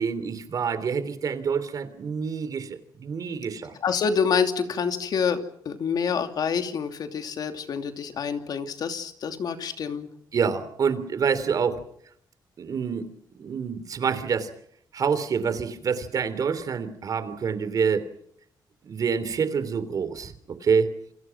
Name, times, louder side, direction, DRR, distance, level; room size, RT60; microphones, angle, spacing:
voice 1, 0.0-3.7 10.3-11.8 12.6-13.1 13.4-14.5 14.9-18.1 18.8-20.3 20.6-20.9, right 6 dB, 50° right, 12 dB, 3.4 m, -27 dB
voice 2, 3.8-10.1, left 6 dB, 60° left, 7 dB, 2.8 m, -27 dB
28.5 x 26.0 x 6.1 m, 0.68 s
cardioid pair, 130°, 8 cm